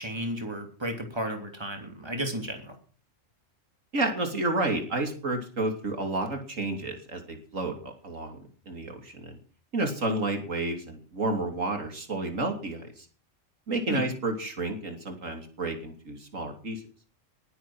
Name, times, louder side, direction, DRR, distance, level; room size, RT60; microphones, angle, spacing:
voice 1, 0.0-2.8 13.9-14.0, right 1 dB, 20° right, 4 dB, 3.1 m, -33 dB
voice 2, 3.9-9.4 9.7-13.0 13.7-16.8, right 2 dB, 80° right, 4 dB, 3.4 m, -31 dB
20.5 x 9.2 x 6.2 m, 0.41 s
omnidirectional pair, 1.3 m